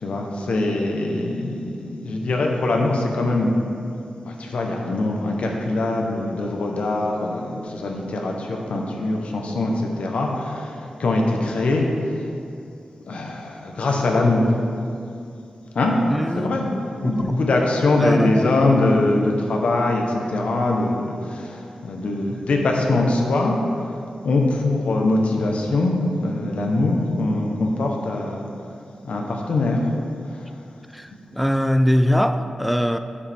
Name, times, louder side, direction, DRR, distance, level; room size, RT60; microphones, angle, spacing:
voice 1, 0.0-3.5 4.2-12.2 13.1-14.5 15.7-15.9 16.4-16.7 17.0-23.6 24.2-28.5 29.0-29.8 30.3-30.4, left 2 dB, 75° left, 0 dB, 1.1 m, -22 dB
voice 2, 16.1-17.4 18.0-18.5 22.3-22.4 30.9-33.0, equal, ahead, 8 dB, 0.4 m, -22 dB
10.0 x 6.5 x 3.6 m, 2.5 s
wide cardioid pair, 110°, 2 cm